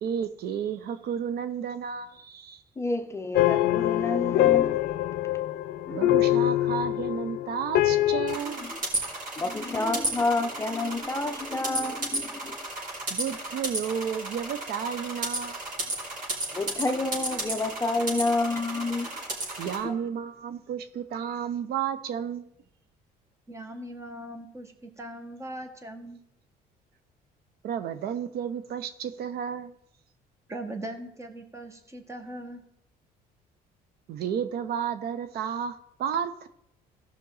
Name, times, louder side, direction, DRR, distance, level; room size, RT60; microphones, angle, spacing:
voice 1, 0.0-2.6 5.9-8.7 13.1-15.9 19.1-19.2 19.6-22.5 27.6-29.7 34.1-36.5, right 8 dB, 70° right, 0.7 m, -32 dB
voice 2, 2.8-4.8 5.9-6.2 8.7-8.8 9.4-12.6 16.5-19.3 19.8-20.0, left 2 dB, 15° left, 0.7 m, -29 dB
sound 1, 3.3-8.4, left 15 dB, 70° left, 0.5 m, -24 dB
sound 2, 8.3-19.8, right 2 dB, 50° right, 4.6 m, -33 dB
voice 3, 23.5-26.2 30.5-32.6, right 1 dB, 15° right, 1.4 m, -40 dB
15.0 x 6.0 x 4.0 m
cardioid pair, 110°, 17 cm